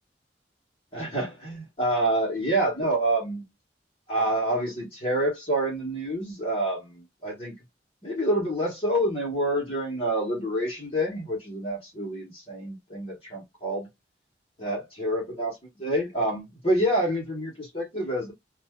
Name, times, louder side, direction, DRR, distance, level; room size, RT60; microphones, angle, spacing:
voice 1, 0.9-3.4 4.1-7.5 8.0-13.9 14.6-15.5 15.8-18.3, right 1 dB, 30° left, 1.1 m, -27 dB
2.5 x 2.2 x 3.4 m
head